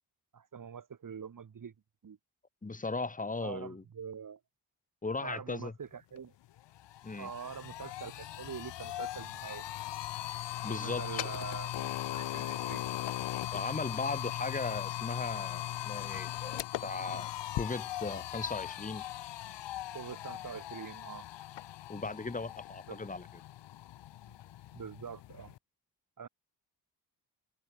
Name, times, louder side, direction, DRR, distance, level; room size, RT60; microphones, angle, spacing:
voice 1, 0.3-1.7 2.0-2.2 3.4-4.4 5.2-6.3 7.2-9.6 10.6-12.9 19.9-21.3 22.9-23.0 24.3-24.4 24.7-25.5 26.2-26.3, right 7 dB, 45° right, 3.4 m, -44 dB
voice 2, 2.6-3.8 5.0-5.7 7.0-7.3 10.6-11.3 13.5-19.0 21.9-23.3, left 3 dB, 20° left, 2.7 m, -37 dB
sound 1, 6.2-6.3 6.6-25.6, left 13 dB, 75° left, 0.8 m, -39 dB
wide cardioid pair, 135°, 43 cm